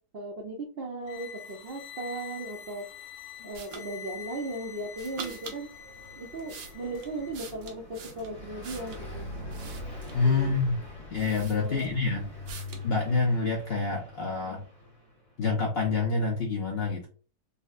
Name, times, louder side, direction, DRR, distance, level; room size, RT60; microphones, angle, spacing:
voice 1, 0.1-2.9 3.4-5.7 6.2-9.3 10.2-10.6 11.6-11.9, right 2 dB, 65° right, -1 dB, 0.5 m, -37 dB
sound 1, 1.0-7.4, left 8 dB, 80° left, 1.1 m, -46 dB
sound 2, 3.5-3.9 4.9-5.6 6.2-9.1 9.5-10.3 10.8-10.9 11.2-12.0 12.5-12.9, right 5 dB, 85° right, 1.3 m, -44 dB
Car passing by, 4.3-15.3, left 1 dB, 30° left, 1.2 m, -43 dB
voice 2, 10.1-10.8 11.1-12.3 12.8-14.6 15.4-17.1, left 4 dB, 60° left, -1 dB, 0.6 m, -27 dB
4.0 x 2.1 x 2.4 m, 0.37 s
omnidirectional pair, 1.7 m